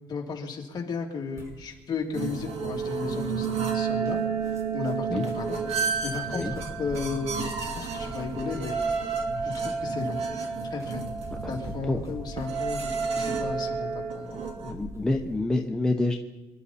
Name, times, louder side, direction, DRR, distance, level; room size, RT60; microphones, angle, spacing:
voice 1, 0.1-5.6 6.0-7.5 7.7-8.8 9.4-10.2 10.6-11.1 11.5-14.4, left 5 dB, 40° left, -1 dB, 2.9 m, -34 dB
sound 1, 1.3-15.4, right 1 dB, 30° right, 6.4 m, -45 dB
sound 2, 2.1-14.7, right 5 dB, 65° right, 2.5 m, -31 dB
voice 2, 14.6-16.1, left 2 dB, 5° left, 1 dB, 1.0 m, -27 dB
26.5 x 12.0 x 4.3 m, 1.2 s
cardioid pair, 145°, 11 cm